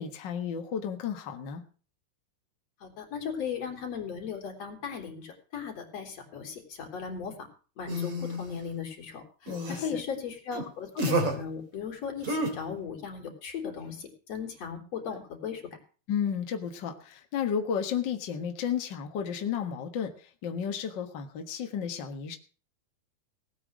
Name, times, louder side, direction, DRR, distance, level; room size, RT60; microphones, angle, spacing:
voice 1, 0.0-1.6 9.5-10.0 16.1-22.4, left 7 dB, 65° left, 5 dB, 1.1 m, -33 dB
voice 2, 2.8-7.5 7.8-15.8, left 6 dB, 45° left, 2 dB, 4.1 m, -37 dB
sound 1, 7.9-8.6 9.5-9.9 10.5-10.6 11.0-11.3 12.2-12.5, right 1 dB, 40° right, 3.6 m, -29 dB
18.0 x 9.1 x 6.3 m, 0.38 s
omnidirectional pair, 4.5 m